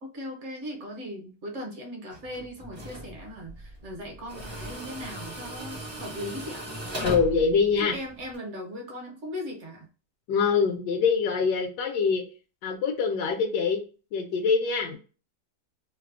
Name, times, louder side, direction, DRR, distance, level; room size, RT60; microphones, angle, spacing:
voice 1, 0.0-6.7 7.8-9.9, left 1 dB, 55° right, 2 dB, 0.9 m, -38 dB
Tools, 2.1-8.4, right 1 dB, 35° right, 0.4 m, -38 dB
voice 2, 7.0-7.9 10.3-12.2 12.6-13.8 14.1-15.0, left 5 dB, 80° left, 2 dB, 1.2 m, -24 dB
3.0 x 2.0 x 2.4 m, 0.35 s
omnidirectional pair, 1.8 m